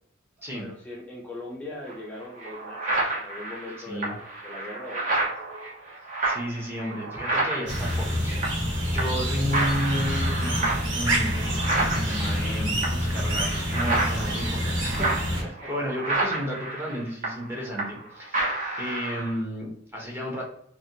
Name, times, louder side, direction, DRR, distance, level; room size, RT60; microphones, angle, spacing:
voice 1, 0.6-5.3 9.1-9.3 15.4-15.7, left 2 dB, 10° left, -4 dB, 0.4 m, -40 dB
sound 1, 1.9-2.0 2.4-8.7 9.0-9.3 9.5-18.1 18.3-19.4, right 2 dB, 45° right, 0.9 m, -30 dB
voice 2, 6.3-20.4, equal, 15° right, -3 dB, 0.9 m, -33 dB
sound 2, 7.7-15.4, equal, 80° right, 1.2 m, -27 dB
3.2 x 2.3 x 2.7 m, 0.68 s
head